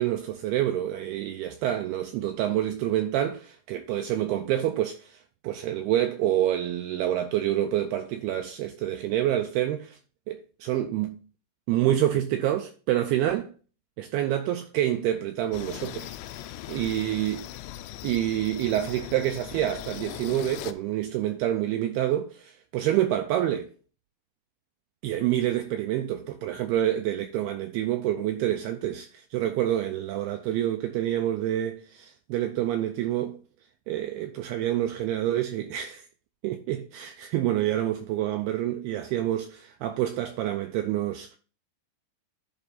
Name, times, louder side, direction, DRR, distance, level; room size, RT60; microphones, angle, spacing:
voice 1, 0.0-5.2 5.4-10.0 10.3-11.2 11.7-13.5 14.0-16.4 16.7-17.4 18.0-23.7 25.0-33.4 33.9-36.1 36.4-41.4, right 12 dB, 85° right, 2.3 m, -27 dB
sound 1, 15.5-20.7, left 13 dB, 85° left, 2.8 m, -40 dB
11.0 x 4.5 x 4.1 m
omnidirectional pair, 5.1 m